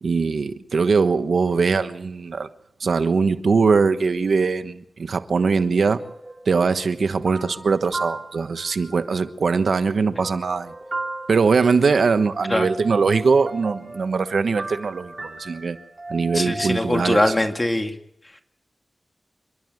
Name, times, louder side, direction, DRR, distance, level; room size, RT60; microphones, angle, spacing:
voice 1, 0.0-2.5 2.8-6.0 6.5-10.7 11.3-15.8 16.1-17.2, right 4 dB, 80° right, 11 dB, 1.2 m, -21 dB
sound 1, 5.3-9.3 9.6-17.6, right 2 dB, 45° right, 3.4 m, -37 dB
voice 2, 16.3-17.9, left 1 dB, 25° left, 6 dB, 2.2 m, -22 dB
28.0 x 11.5 x 9.3 m, 0.75 s
cardioid pair, 45°, 0 cm